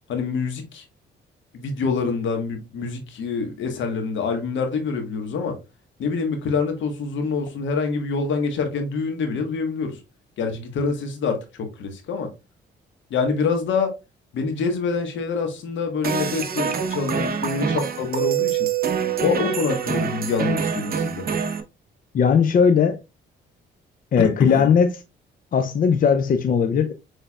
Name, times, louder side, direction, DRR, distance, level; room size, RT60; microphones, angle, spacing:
voice 1, 0.1-0.8 1.5-5.6 6.0-10.0 10.4-12.3 13.1-14.0 14.3-18.7 19.2-21.2 24.2-24.7, left 5 dB, 75° left, 1.4 m, -26 dB
sound 1, 16.0-21.6, right 7 dB, 50° right, 0.9 m, -25 dB
voice 2, 22.1-23.0 24.1-24.9 25.5-26.9, left 6 dB, 45° left, 0.5 m, -18 dB
6.4 x 3.4 x 2.4 m
cardioid pair, 90°, 20 cm